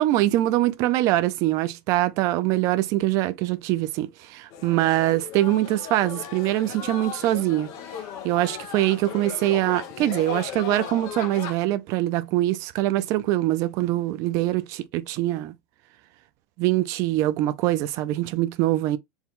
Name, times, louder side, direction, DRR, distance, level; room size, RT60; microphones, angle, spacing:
voice 1, 0.0-7.7 8.2-15.5 16.6-19.0, right 15 dB, 40° right, 0.4 m, -23 dB
sound 1, 4.5-11.6, left 8 dB, 40° left, 0.9 m, -37 dB
4.4 x 2.2 x 3.6 m
supercardioid pair, 165°, 8 cm